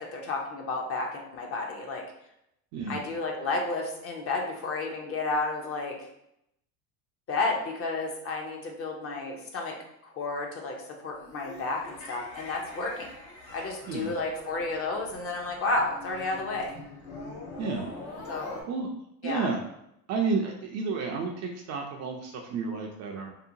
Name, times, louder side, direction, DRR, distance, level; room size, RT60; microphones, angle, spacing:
voice 1, 0.0-2.0 2.9-6.0 7.3-9.8 10.0-13.1 13.5-16.8 18.3-18.7 19.2-19.5, left 3 dB, 35° left, 1 dB, 0.6 m, -32 dB
voice 2, 2.7-3.0 13.9-14.2 17.6-17.9 18.7-18.9 19.2-19.6 20.1-23.3, right 4 dB, 40° right, 2 dB, 0.4 m, -31 dB
sound 1, 11.1-18.6, left 2 dB, 75° left, 1.1 m, -44 dB
2.8 x 2.1 x 2.6 m, 0.78 s
supercardioid pair, 105°, 44 cm